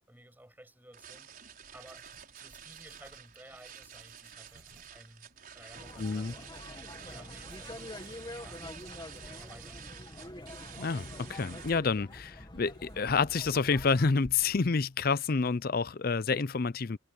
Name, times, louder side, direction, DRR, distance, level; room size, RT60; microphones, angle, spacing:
voice 1, 0.0-2.1 2.4-8.6 9.1-9.8, right 1 dB, 10° right, 7.8 m, -55 dB
sound 1, 0.9-11.7, right 8 dB, 45° right, 5.8 m, -50 dB
Writing, 1.2-16.0, right 1 dB, 60° right, 7.0 m, -59 dB
sound 2, 5.7-14.1, left 1 dB, 20° left, 2.0 m, -46 dB
voice 2, 6.0-6.3 10.8-17.0, left 4 dB, 45° left, 0.5 m, -29 dB
head